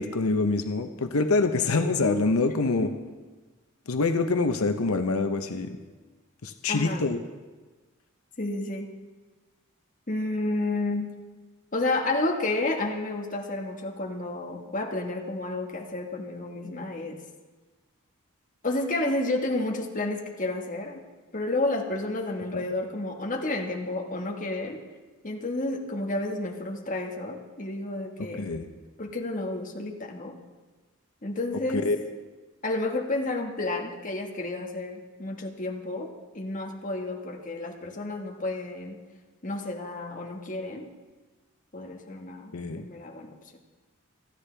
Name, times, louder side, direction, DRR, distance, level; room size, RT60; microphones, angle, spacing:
voice 1, 0.0-2.9 3.9-5.8 6.4-7.2 22.5-22.6 28.4-28.7 31.7-32.0 42.5-42.9, left 3 dB, 85° left, 7 dB, 0.8 m, -25 dB
voice 2, 1.7-2.2 2.8-2.9 6.7-7.0 8.4-8.9 10.1-11.1 11.7-17.2 18.6-21.0 21.3-24.8 25.2-28.5 29.0-30.4 31.2-31.9 32.6-36.1 36.3-39.0 39.4-40.9 41.7-43.3, left 2 dB, 35° left, 1 dB, 1.5 m, -31 dB
28.5 x 9.9 x 3.4 m, 1.3 s
head